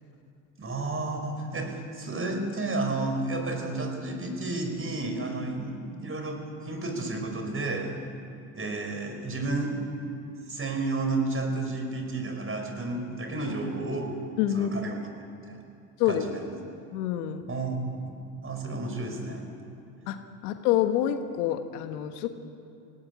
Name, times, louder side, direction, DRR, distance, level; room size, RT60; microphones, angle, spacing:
voice 1, 0.6-8.0 8.5-9.8 10.5-14.2 14.5-15.0 15.5-15.6 16.1-16.4 17.5-18.2 18.4-19.4, right 2 dB, 30° right, 5 dB, 4.8 m, -31 dB
voice 2, 14.4-14.7 16.0-16.3 16.9-17.5 20.1-22.3, left 11 dB, 75° left, 8 dB, 1.5 m, -27 dB
19.0 x 17.5 x 9.8 m, 2.5 s
hypercardioid pair, 70°, 46 cm